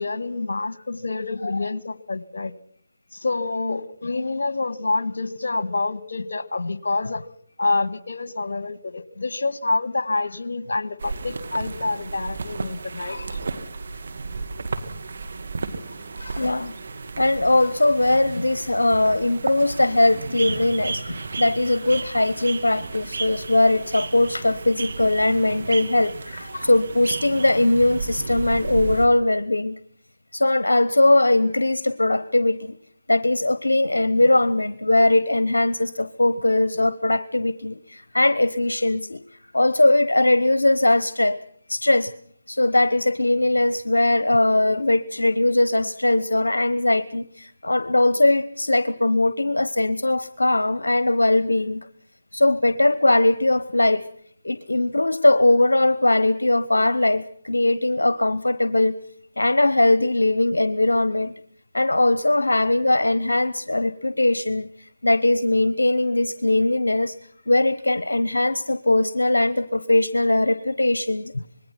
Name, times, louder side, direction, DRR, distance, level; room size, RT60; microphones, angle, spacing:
voice 1, 0.0-2.5 3.1-7.3 7.6-13.4 16.2-16.4 26.3-26.7 71.3-71.4, left 3 dB, 70° left, 16 dB, 1.6 m, -27 dB
sound 1, 11.0-29.1, right 4 dB, 60° right, 2.4 m, -33 dB
voice 2, 16.4-16.7 17.2-29.8 30.3-32.8 33.1-39.2 39.5-41.4 41.7-42.1 42.5-51.9 52.3-54.1 54.4-58.9 59.4-61.3 61.7-71.3, left 2 dB, 90° left, 14 dB, 0.9 m, -20 dB
26.0 x 21.0 x 6.0 m, 0.64 s
figure-of-eight pair, 155°, 0 cm